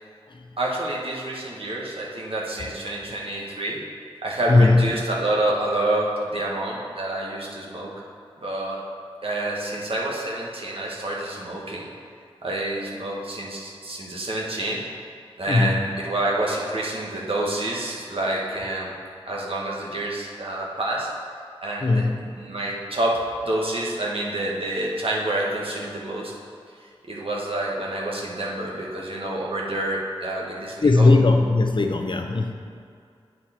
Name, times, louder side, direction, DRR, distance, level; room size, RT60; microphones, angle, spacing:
voice 1, 0.6-3.8 4.2-7.9 8.4-8.8 9.2-11.9 12.4-14.8 15.4-18.9 19.3-21.1 21.6-26.3 27.0-31.1, right 1 dB, 65° right, -3 dB, 1.5 m, -28 dB
voice 2, 4.5-4.9 15.5-15.9 21.8-22.3 30.8-32.5, left 3 dB, 50° left, 4 dB, 0.7 m, -18 dB
9.3 x 4.5 x 4.4 m, 2.3 s
cardioid pair, 40°, 10 cm